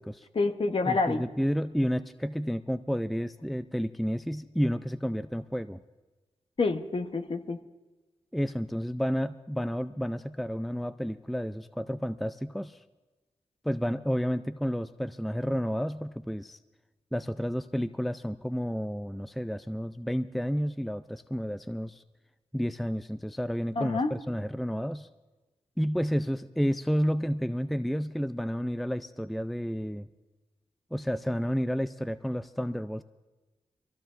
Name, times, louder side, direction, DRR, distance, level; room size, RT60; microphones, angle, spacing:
voice 1, 0.3-1.2 6.6-7.6 23.8-24.1, left 3 dB, 55° left, 6 dB, 1.1 m, -27 dB
voice 2, 0.9-5.8 8.3-12.8 13.6-16.6 17.1-22.0 22.5-25.1 25.8-30.1 30.9-33.0, equal, ahead, 12 dB, 0.4 m, -31 dB
23.5 x 15.0 x 2.6 m, 1.2 s
cardioid pair, 55°, 12 cm